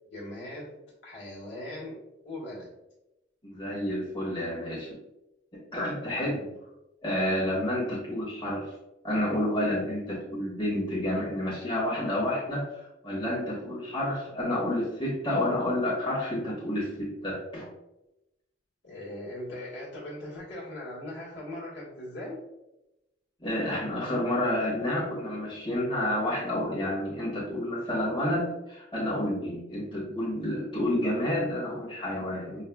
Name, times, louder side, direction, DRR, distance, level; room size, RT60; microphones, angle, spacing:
voice 1, 0.1-0.8 1.0-2.0 2.2-2.7 6.0-6.6 18.8-22.4, left 1 dB, 80° left, -6 dB, 1.5 m, -40 dB
voice 2, 3.4-4.9 5.7-6.4 7.0-8.7 9.0-17.6 23.4-32.6, left 1 dB, 25° left, -8 dB, 1.2 m, -29 dB
5.4 x 2.2 x 2.3 m, 0.94 s
head